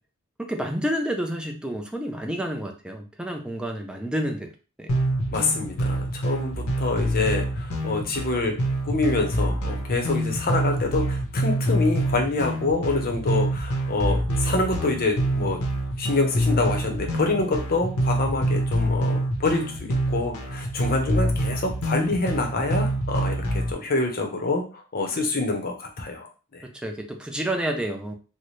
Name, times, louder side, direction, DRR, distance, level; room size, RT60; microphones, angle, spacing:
voice 1, 0.4-4.5 4.8-4.9 26.8-28.1, right 1 dB, 5° right, 3 dB, 0.4 m, -29 dB
sound 1, 4.9-23.7, right 1 dB, 85° left, 0.8 m, -26 dB
voice 2, 5.3-8.6 8.8-15.6 16.0-24.6 24.9-26.3 26.5-26.6, left 3 dB, 45° left, 3 dB, 0.7 m, -26 dB
4.1 x 2.1 x 3.1 m, 0.35 s
head